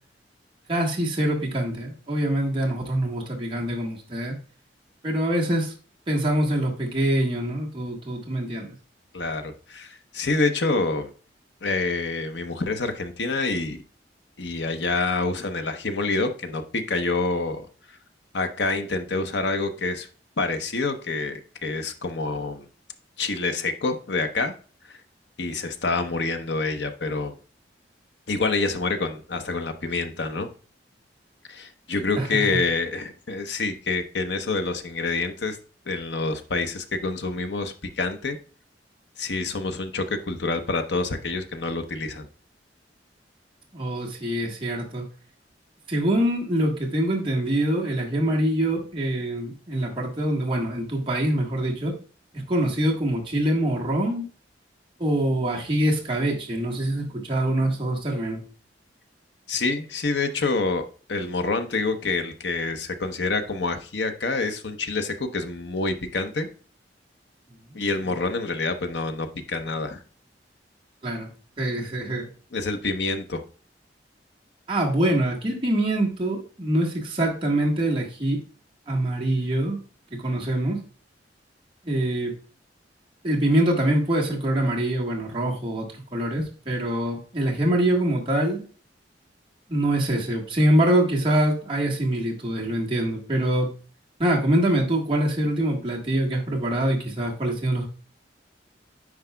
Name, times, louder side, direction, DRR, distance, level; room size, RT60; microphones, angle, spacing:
voice 1, 0.7-4.4 5.0-5.7 6.1-8.7 32.2-32.6 43.7-45.1 45.9-51.9 52.3-54.3 55.0-58.4 67.7-67.8 71.0-71.3 71.6-72.3 74.7-78.4 78.9-79.8 80.1-80.8 81.8-82.3 83.2-88.6 89.7-93.7 94.2-97.9, right 1 dB, 30° right, -2 dB, 1.5 m, -24 dB
voice 2, 9.1-11.1 11.6-13.8 14.4-17.7 18.3-20.1 20.4-22.7 23.2-24.5 25.4-27.3 28.3-30.5 31.5-35.6 35.9-38.4 39.2-42.3 59.5-66.5 67.7-70.0 72.5-73.4, left 3 dB, 70° left, 7 dB, 0.8 m, -27 dB
9.6 x 4.7 x 2.2 m, 0.39 s
head